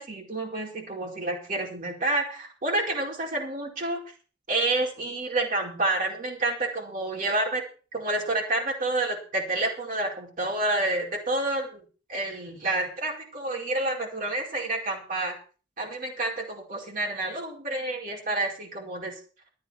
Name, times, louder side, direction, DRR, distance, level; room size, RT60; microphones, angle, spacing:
voice 1, 0.0-4.0 4.5-7.6 7.9-11.8 12.1-15.4 15.8-19.1, right 2 dB, 45° right, -2 dB, 4.8 m, -29 dB
13.0 x 9.5 x 6.3 m, 0.38 s
head